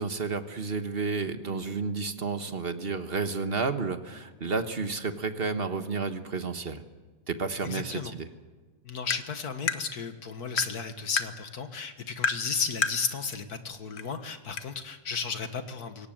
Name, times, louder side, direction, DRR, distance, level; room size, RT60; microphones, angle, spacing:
voice 1, 0.0-6.8 7.3-8.3, right 4 dB, 35° right, 8 dB, 1.4 m, -31 dB
voice 2, 7.6-8.1 8.8-16.1, left 5 dB, 60° left, 8 dB, 2.1 m, -34 dB
Tap, 9.1-9.2 9.7-9.8 10.6-10.7 11.2-11.3 12.2-12.4 12.8-13.0 14.0-14.1 14.6-14.7, left 5 dB, 45° left, 1.2 m, -28 dB
22.0 x 18.5 x 8.9 m, 1.3 s
omnidirectional pair, 1.9 m